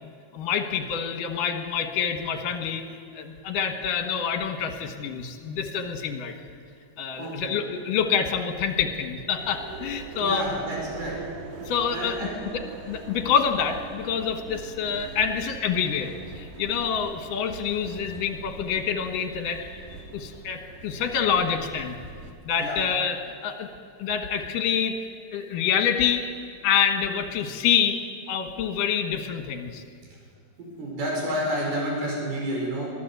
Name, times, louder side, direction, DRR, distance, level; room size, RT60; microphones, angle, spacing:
voice 1, 0.0-2.9 3.1-6.3 7.0-10.5 11.7-12.3 12.5-12.6 12.9-19.7 20.1-22.0 22.5-23.7 24.0-24.9 25.3-26.2 26.6-28.0 28.3-29.8, left 7 dB, 65° left, 6 dB, 2.9 m, -27 dB
voice 2, 7.2-7.6 10.2-11.2 11.9-12.4 22.6-22.8 30.6-32.9, equal, 80° right, -2 dB, 6.8 m, -30 dB
sound 1, 9.4-22.3, right 4 dB, 60° right, 2.8 m, -42 dB
22.5 x 15.0 x 8.1 m, 2.2 s
omnidirectional pair, 4.4 m